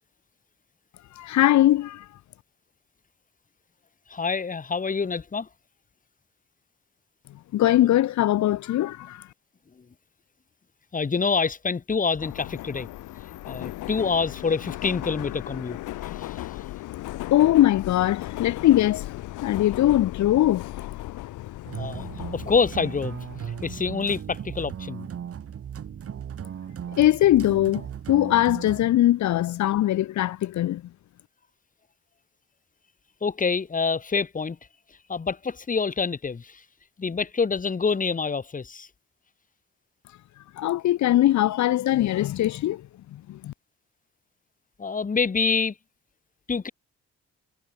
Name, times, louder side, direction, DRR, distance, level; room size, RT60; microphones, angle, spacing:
voice 1, 1.2-2.0 7.5-9.2 17.3-19.0 19.4-20.7 26.9-30.8 40.6-42.8 43.1-43.5, left 13 dB, 70° left, 1.0 m, -21 dB
voice 2, 4.1-5.5 10.9-12.9 13.5-15.8 16.0-16.5 21.7-22.1 22.3-23.2 23.6-25.1 33.2-34.6 35.1-36.6 37.0-38.9 44.8-45.7 46.5-46.7, left 5 dB, 25° left, 1.4 m, -26 dB
Subway metro underground, 12.2-24.2, left 16 dB, 90° left, 3.7 m, -37 dB
sound 1, 21.7-28.9, right 8 dB, 50° right, 1.7 m, -37 dB
cardioid pair, 90°, 30 cm